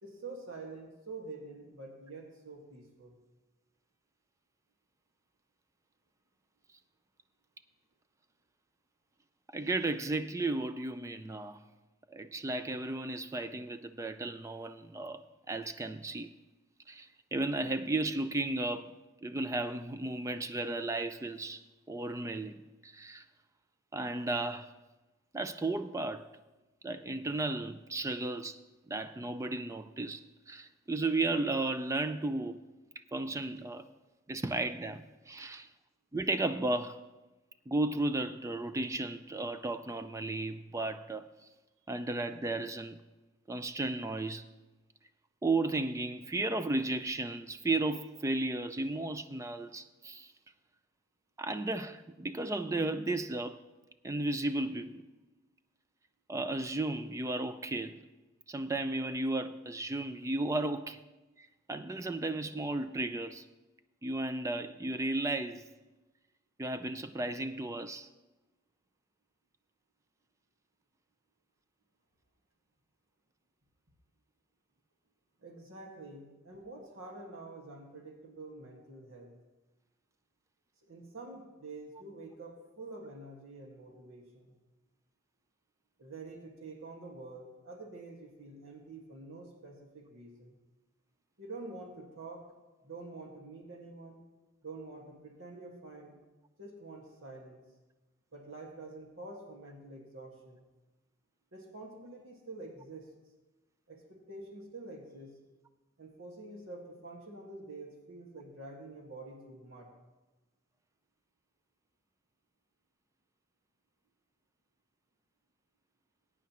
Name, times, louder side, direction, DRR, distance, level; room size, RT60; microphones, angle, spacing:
voice 1, 0.0-3.2 75.4-79.3 80.9-84.5 86.0-90.6 91.4-92.4 92.8-94.2 94.6-96.1 96.6-97.6 98.3-100.6 101.5-103.1 103.9-105.3 106.0-109.9, right 2 dB, 75° right, 1.9 m, -47 dB
voice 2, 9.5-11.6 12.1-15.2 15.5-16.3 16.9-18.9 19.2-21.6 21.9-23.2 23.9-24.7 25.3-26.3 26.8-28.6 28.9-32.6 33.1-33.9 34.3-35.7 36.1-37.0 37.7-41.3 41.9-43.0 43.5-44.4 45.4-50.3 51.4-53.6 54.0-55.0 56.3-58.0 58.5-61.0 61.7-63.4 64.0-65.7 66.6-68.1, right 2 dB, 15° right, 0.3 m, -34 dB
20.5 x 9.2 x 3.0 m
head